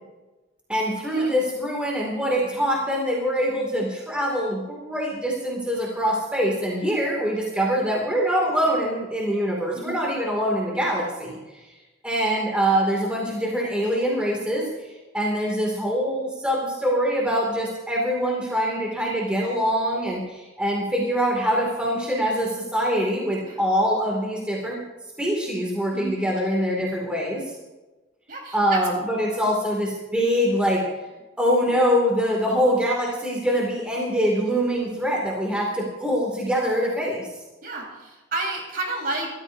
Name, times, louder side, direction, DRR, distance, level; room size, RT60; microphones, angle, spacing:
voice 1, 0.7-11.6 12.0-24.8 25.2-27.5 28.5-30.9 31.4-37.3, equal, 5° right, -3 dB, 2.5 m, -24 dB
voice 2, 28.3-28.8 37.6-39.3, right 2 dB, 45° right, -1 dB, 4.4 m, -31 dB
27.5 x 14.0 x 2.7 m, 1.1 s
head